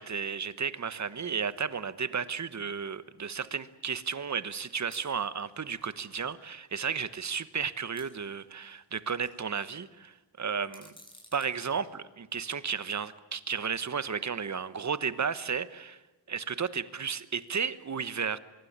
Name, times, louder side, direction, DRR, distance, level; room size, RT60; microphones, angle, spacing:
voice 1, 0.0-10.9 11.3-16.0 16.3-18.4, right 6 dB, 40° right, 15 dB, 1.1 m, -33 dB
sound 1, 4.9-5.1 6.3-6.4 6.8-6.9 8.0-8.8 9.1-9.6 10.6-11.7 12.7-12.9, left 1 dB, 10° left, 7.9 m, -53 dB
24.5 x 23.0 x 8.7 m, 1.1 s
wide cardioid pair, 125°, 44 cm